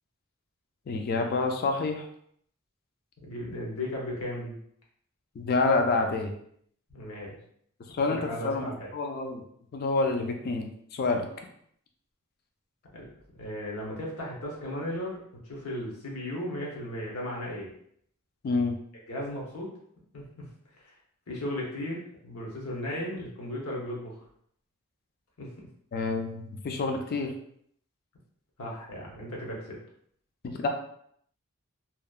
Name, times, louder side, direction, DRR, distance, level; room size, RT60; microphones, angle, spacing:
voice 1, 0.9-2.0 5.4-6.3 7.9-9.4 9.7-11.3 18.4-18.7 25.9-27.3 30.4-30.7, left 3 dB, 45° left, 4 dB, 0.3 m, -28 dB
voice 2, 3.2-4.6 6.9-7.4 8.1-8.9 12.9-17.7 19.1-19.7 20.1-20.5 20.8-20.9 21.3-24.2 25.4-25.5 28.6-29.8, left 1 dB, 80° left, -3 dB, 0.8 m, -36 dB
2.8 x 2.0 x 2.3 m, 0.67 s
head